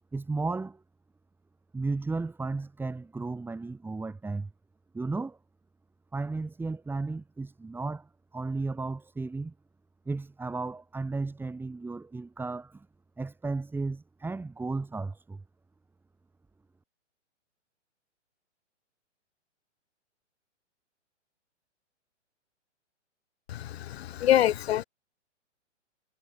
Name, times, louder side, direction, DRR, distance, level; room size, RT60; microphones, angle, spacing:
voice 1, 0.1-0.8 1.7-4.5 4.9-5.4 6.1-9.5 10.1-12.9 13.2-15.4, right 3 dB, 5° right, 2.3 m, -34 dB
voice 2, 23.5-24.8, left 12 dB, 55° left, 0.9 m, -25 dB
hypercardioid pair, 130°, 37 cm